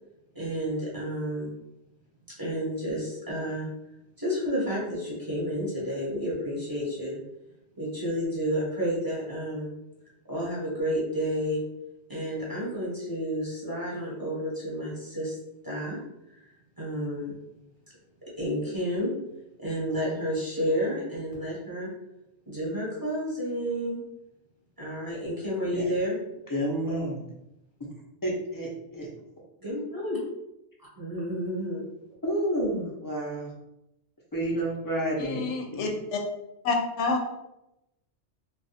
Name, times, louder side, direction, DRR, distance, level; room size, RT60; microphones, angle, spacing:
voice 1, 0.3-1.5 2.4-3.7 4.2-7.2 7.8-9.7 10.3-11.6 12.1-15.4 15.6-16.0 16.8-17.3 18.4-19.1 19.6-21.9 22.5-24.0 24.8-26.1 29.6-30.2 30.8-31.8, equal, 20° right, -7 dB, 1.1 m, -30 dB
voice 2, 26.5-27.2 28.2-29.1 32.2-33.5 34.3-35.9, right 1 dB, 20° left, -4 dB, 0.7 m, -30 dB
voice 3, 35.2-36.2 36.6-37.2, left 4 dB, 85° left, 2 dB, 0.9 m, -28 dB
2.4 x 2.3 x 4.0 m, 0.88 s
omnidirectional pair, 1.2 m